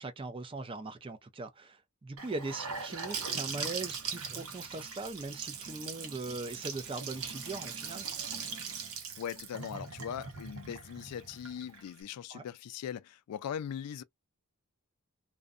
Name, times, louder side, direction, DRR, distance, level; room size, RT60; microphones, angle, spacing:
voice 1, 0.0-8.1 12.3-12.4, right 3 dB, 25° right, 0.4 m, -40 dB
Gurgling / Sink (filling or washing) / Bathtub (filling or washing), 2.2-12.0, right 5 dB, 75° right, 0.9 m, -40 dB
voice 2, 9.2-14.0, left 9 dB, 90° left, 0.3 m, -40 dB
2.6 x 2.1 x 2.4 m
head